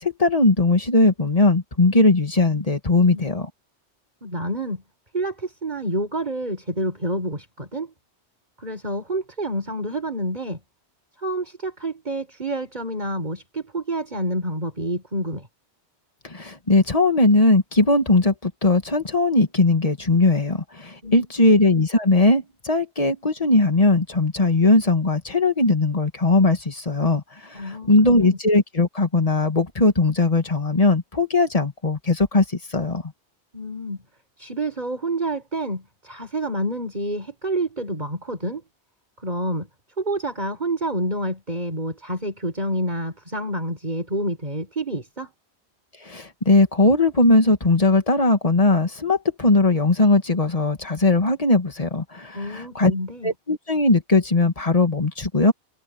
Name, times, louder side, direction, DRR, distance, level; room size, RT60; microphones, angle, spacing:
voice 1, 0.0-3.5 16.2-32.4 32.7-33.0 46.0-52.9 53.2-55.5, left 2 dB, 30° left, 2.1 m, -19 dB
voice 2, 3.0-3.3 4.2-4.8 5.1-7.9 8.6-10.6 11.2-15.5 21.0-21.3 27.5-28.4 33.5-34.0 34.4-38.6 39.2-39.7 40.0-45.3 52.3-53.3, right 1 dB, 40° right, 4.9 m, -28 dB
omnidirectional pair, 1.2 m